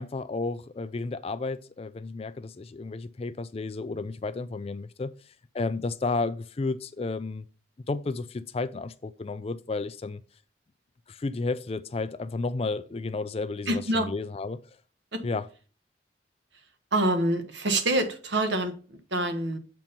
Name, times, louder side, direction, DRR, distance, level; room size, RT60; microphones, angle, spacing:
voice 1, 0.0-5.1 5.5-7.4 7.9-10.2 11.1-14.6 15.2-15.4, left 3 dB, 30° left, 0.4 m, -32 dB
voice 2, 13.7-14.1 15.1-15.2 16.9-19.6, right 1 dB, 70° right, 1.2 m, -26 dB
7.2 x 4.6 x 5.2 m
head